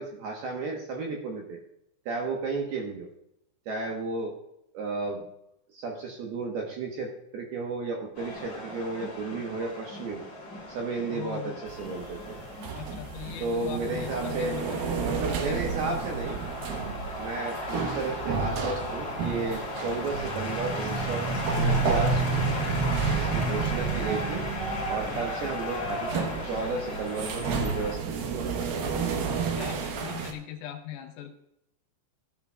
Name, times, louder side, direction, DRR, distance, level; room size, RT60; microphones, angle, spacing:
voice 1, 0.0-1.6 2.1-3.1 3.7-4.4 4.7-5.2 5.7-7.1 7.3-10.2 10.7-12.4 13.4-14.5 15.0-16.4 17.2-21.2 21.5-22.4 23.1-24.4 24.9-28.9, right 3 dB, 70° right, 0 dB, 2.5 m, -33 dB
sound 1, 8.1-28.0, left 1 dB, 35° left, 3.4 m, -36 dB
voice 2, 11.1-11.6 12.7-14.9 15.3-15.6 25.0-25.5 29.6-31.4, left 10 dB, 85° left, 5 dB, 3.8 m, -40 dB
sound 2, 11.7-30.3, right 5 dB, 90° right, 2.0 m, -31 dB
15.0 x 10.5 x 2.4 m, 0.78 s
omnidirectional pair, 5.9 m